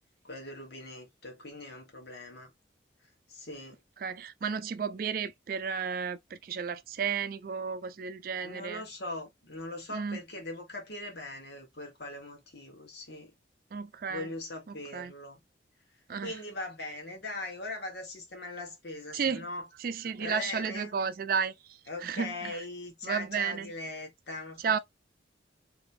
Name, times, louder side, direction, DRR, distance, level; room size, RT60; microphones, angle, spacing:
voice 1, 0.2-2.5 3.3-3.8 8.4-13.3 14.1-15.4 16.2-19.7 20.2-20.9 21.9-24.8, left 2 dB, 65° left, 1.4 m, -40 dB
voice 2, 4.0-8.8 9.9-10.2 13.7-14.3 14.9-15.1 16.1-16.3 19.1-19.4 19.8-21.5 22.0-22.6 23.0-23.7 24.6-24.8, right 6 dB, 50° right, 0.4 m, -32 dB
3.1 x 2.9 x 2.6 m
head